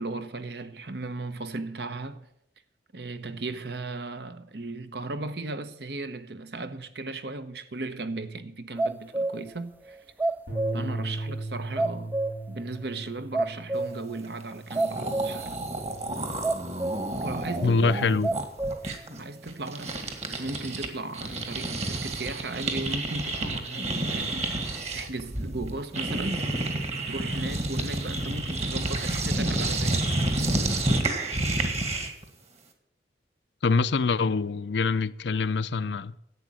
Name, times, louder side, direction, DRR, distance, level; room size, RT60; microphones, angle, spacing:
voice 1, 0.0-2.3 2.9-10.0 10.7-12.2 12.5-15.6 17.2-18.0 19.2-24.5 24.9-26.7 26.9-30.2, right 2 dB, 65° right, 1.0 m, -36 dB
sound 1, 8.8-9.6 9.9-11.0 11.3-11.4 11.8-12.6 12.9-13.0 13.3-14.2 14.5-15.6 15.9-16.0 16.4-17.2 17.6-17.7 18.2-19.0, right 2 dB, 10° right, 0.4 m, -29 dB
Bass guitar, 10.5-16.7, right 1 dB, 85° right, 4.2 m, -38 dB
sound 2, 14.4-14.5 14.7-20.9 21.1-32.2, right 2 dB, 35° right, 1.9 m, -30 dB
voice 2, 17.6-18.3 33.6-36.1, left 4 dB, 75° left, 0.5 m, -24 dB
11.5 x 8.5 x 9.0 m
head